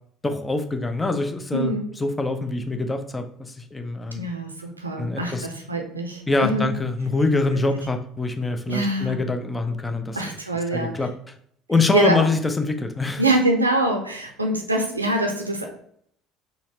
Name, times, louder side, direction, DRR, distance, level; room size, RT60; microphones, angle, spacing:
voice 1, 0.2-1.7 2.0-4.2 5.0-5.5 6.3-10.2 10.7-11.3 11.7-13.2, left 3 dB, 15° left, 6 dB, 0.5 m, -24 dB
voice 2, 1.5-1.9 4.1-6.7 8.7-9.2 10.1-11.0 11.9-12.3 13.2-15.7, right 1 dB, 90° right, 3 dB, 0.5 m, -24 dB
3.9 x 2.1 x 2.6 m, 0.66 s
figure-of-eight pair, 60°, 0 cm